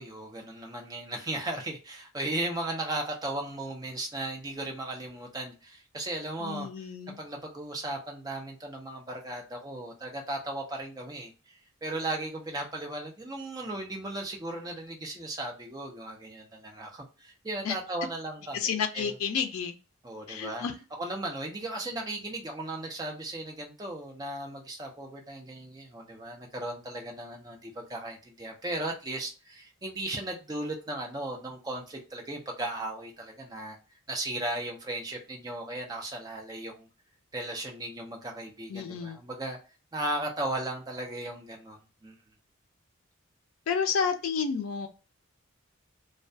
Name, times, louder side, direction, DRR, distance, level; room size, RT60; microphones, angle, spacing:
voice 1, 0.0-6.8 7.2-19.1 20.0-20.6 21.0-33.8 34.1-36.9 37.3-39.6 39.9-41.8 42.0-42.2, right 1 dB, 15° right, 0.5 m, -36 dB
voice 2, 6.4-7.2 17.6-17.7 18.5-19.7 20.3-20.7 38.7-39.2 43.7-44.9, left 6 dB, 80° left, 0.4 m, -30 dB
2.2 x 2.2 x 2.5 m
head